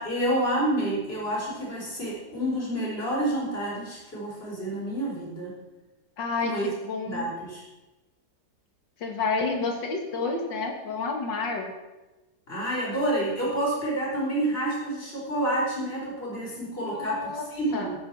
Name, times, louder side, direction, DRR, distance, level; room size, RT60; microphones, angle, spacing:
voice 1, 0.0-5.5 6.4-6.7 7.0-7.6 12.5-17.9, right 1 dB, 30° left, -5 dB, 4.6 m, -29 dB
voice 2, 6.2-7.3 9.0-11.7 16.7-17.4 17.7-17.9, left 4 dB, 70° left, 3 dB, 2.5 m, -30 dB
14.5 x 9.6 x 4.7 m, 1.1 s
omnidirectional pair, 2.1 m